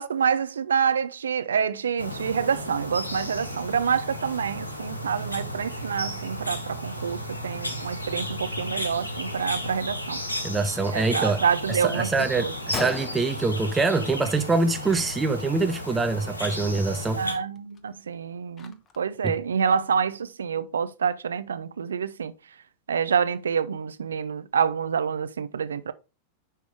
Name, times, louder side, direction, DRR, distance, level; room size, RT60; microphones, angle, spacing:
voice 1, 0.0-10.2 10.9-12.5 17.1-22.3 22.9-25.9, right 7 dB, 70° right, 0.6 m, -27 dB
sound 1, 2.0-17.4, equal, 80° left, 1.6 m, -34 dB
voice 2, 10.4-11.4 11.7-17.2 19.2-19.3, right 3 dB, 10° right, 0.6 m, -25 dB
Gunshot gunfire, 12.7-14.3 14.7-15.0 15.3-15.5 16.3-16.5 17.0-17.1 17.6-19.1, left 5 dB, 25° left, 1.0 m, -38 dB
10.0 x 3.5 x 4.6 m
figure-of-eight pair, 90°, 0 cm